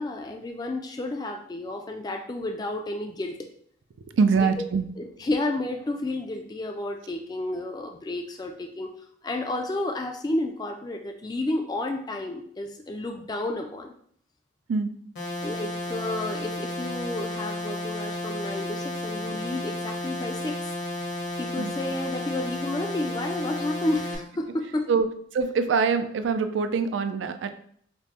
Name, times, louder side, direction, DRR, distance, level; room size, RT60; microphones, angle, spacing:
voice 1, 0.0-3.4 4.4-4.6 5.0-8.9 9.2-13.9 15.4-20.8 21.4-24.9, left 2 dB, 20° left, 3 dB, 0.3 m, -31 dB
voice 2, 4.1-4.9 14.7-14.9 21.6-21.7 24.9-25.1 25.3-27.5, right 5 dB, 80° right, 9 dB, 0.4 m, -24 dB
sound 1, 15.2-24.2, left 1 dB, 75° left, 1.2 m, -32 dB
5.1 x 2.1 x 2.8 m, 0.62 s
head